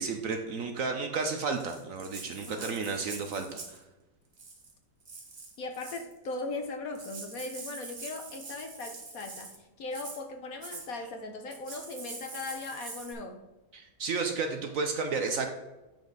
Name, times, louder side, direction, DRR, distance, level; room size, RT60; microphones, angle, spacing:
voice 1, 0.0-3.8 13.7-15.5, right 4 dB, 60° right, 5 dB, 1.0 m, -32 dB
Rattle (instrument), 1.5-3.8 4.3-4.7 5.0-6.1 6.7-6.8 6.9-9.6 9.9-10.2 10.6-10.9 11.5-13.1, right 3 dB, 35° right, 1.3 m, -44 dB
voice 2, 5.6-13.5, left 3 dB, 60° left, 5 dB, 1.2 m, -39 dB
9.0 x 5.3 x 3.8 m, 1.1 s
omnidirectional pair, 1.9 m